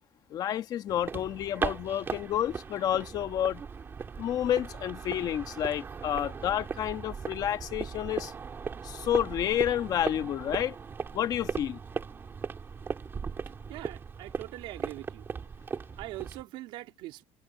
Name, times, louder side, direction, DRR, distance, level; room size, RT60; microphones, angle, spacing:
voice 1, 0.3-3.6 4.2-8.3 8.8-10.7 11.1-11.8, left 11 dB, 40° left, 1.3 m, -30 dB
sound 1, 0.9-16.4, right 5 dB, 25° right, 3.1 m, -38 dB
voice 2, 13.7-15.3 15.9-17.2, right 17 dB, 65° right, 3.5 m, -42 dB
cardioid pair, 165°, 10 cm